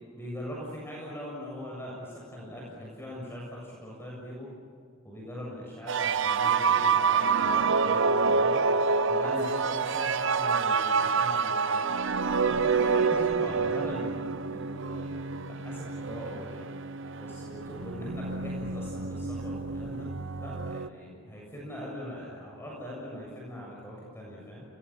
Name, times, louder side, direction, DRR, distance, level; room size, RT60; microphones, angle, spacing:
voice 1, 0.2-4.5 5.0-8.6 9.1-11.9 12.5-16.7 17.2-20.1 20.4-24.6, equal, 10° left, -4 dB, 7.5 m, -41 dB
sound 1, 5.9-20.9, right 5 dB, 65° right, 0.9 m, -27 dB
30.0 x 21.5 x 9.0 m, 2.2 s
head